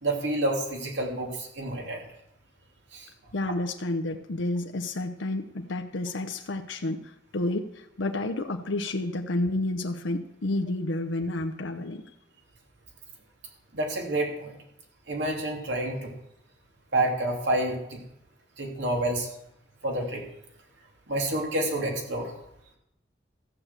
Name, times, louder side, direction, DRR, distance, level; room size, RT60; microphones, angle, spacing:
voice 1, 0.0-2.1 2.9-3.1 13.7-14.6 15.1-16.1 16.9-18.0 18.6-19.3 19.8-20.2 21.1-22.3, right 1 dB, 65° right, 0 dB, 2.9 m, -28 dB
voice 2, 3.3-12.0, left 2 dB, 80° left, 5 dB, 0.8 m, -30 dB
14.5 x 6.7 x 7.5 m, 0.82 s
head